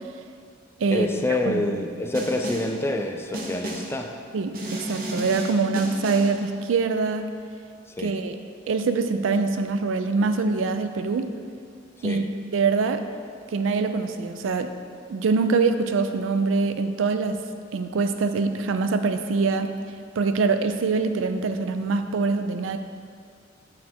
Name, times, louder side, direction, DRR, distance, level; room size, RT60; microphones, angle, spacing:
voice 1, 0.9-4.1 7.9-8.2 12.0-12.3, left 2 dB, 15° left, 3 dB, 0.4 m, -27 dB
Snare drum, 2.1-2.8 3.3-4.0 4.5-6.4, right 1 dB, 50° right, 0.7 m, -33 dB
voice 2, 4.3-7.3 8.0-8.4 8.7-11.3 12.0-12.2 12.5-13.0 13.5-14.7 15.1-17.4 17.7-19.7 20.2-22.8, right 4 dB, 85° right, 9 dB, 0.4 m, -24 dB
6.4 x 4.5 x 4.3 m, 2.2 s
head